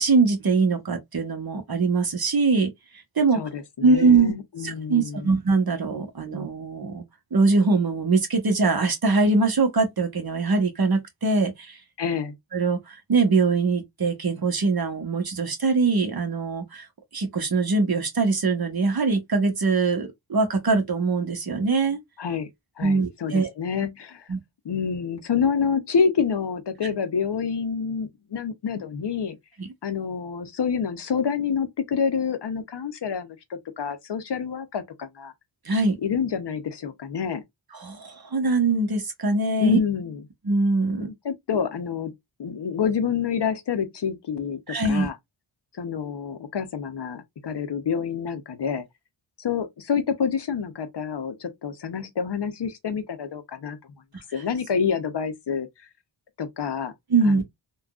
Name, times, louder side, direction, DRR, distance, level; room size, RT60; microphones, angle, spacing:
voice 1, 0.0-2.7 3.2-3.4 3.8-4.3 4.6-7.0 7.3-11.8 12.5-12.8 13.1-16.9 17.1-22.0 22.8-23.5 24.3-24.4 29.6-29.7 35.7-36.0 37.8-39.8 40.4-41.1 44.7-45.1 57.1-57.4, right 3 dB, 45° right, 1.0 m, -22 dB
voice 2, 3.3-5.3 12.0-12.3 22.2-22.5 22.8-24.3 24.6-29.4 29.8-35.3 36.0-37.4 39.6-40.2 41.0-42.1 42.4-45.1 45.7-48.8 49.4-53.8 54.3-55.9 56.4-56.9 57.2-57.4, left 6 dB, 55° left, 0.7 m, -27 dB
3.5 x 2.3 x 2.3 m
wide cardioid pair, 80°, 49 cm